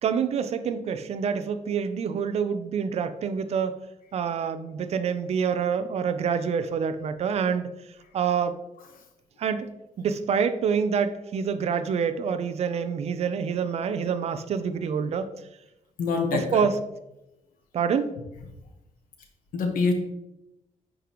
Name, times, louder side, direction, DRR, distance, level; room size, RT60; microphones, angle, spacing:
voice 1, 0.0-3.7 4.1-7.7 8.1-8.6 9.4-9.7 10.0-15.3 16.3-16.8 17.7-18.2, right 6 dB, 50° right, 10 dB, 0.5 m, -26 dB
voice 2, 16.0-16.7 19.5-19.9, left 4 dB, 80° left, 4 dB, 1.3 m, -25 dB
9.6 x 5.1 x 3.1 m, 0.92 s
wide cardioid pair, 175°, 14 cm